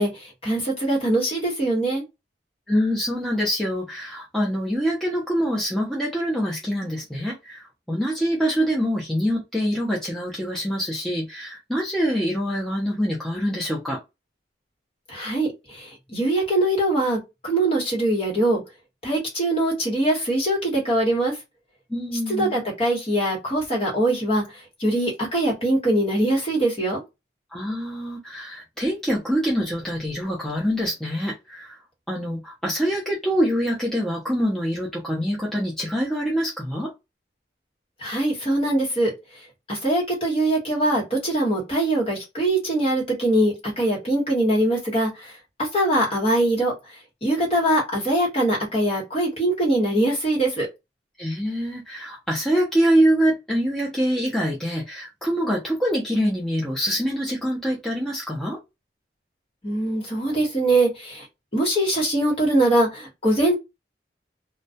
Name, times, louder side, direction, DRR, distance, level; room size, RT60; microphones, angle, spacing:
voice 1, 0.0-2.0 15.1-18.6 19.0-21.3 22.4-24.4 24.8-27.0 38.0-39.1 39.7-45.3 45.6-46.7 47.2-50.7 59.6-61.2 61.5-63.5, right 1 dB, 30° left, 1.1 m, -22 dB
voice 2, 2.7-14.0 21.9-22.5 27.5-31.8 32.1-36.9 51.2-58.6, equal, ahead, 0.5 m, -25 dB
2.3 x 2.1 x 2.7 m
head